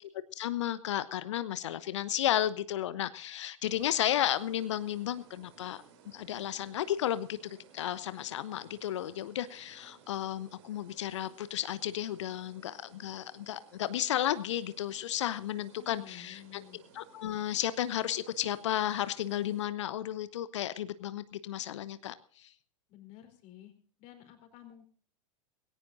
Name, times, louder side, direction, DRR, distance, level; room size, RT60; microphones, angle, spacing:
voice 1, 0.3-22.5, left 12 dB, 60° left, 16 dB, 0.9 m, -33 dB
sound 1, 3.6-19.7, right 7 dB, 50° right, 3.7 m, -59 dB
voice 2, 15.7-16.8 22.9-23.7 24.0-24.9, left 12 dB, 40° left, 6 dB, 3.9 m, -52 dB
20.0 x 17.5 x 2.6 m, 0.43 s
figure-of-eight pair, 90°, 17 cm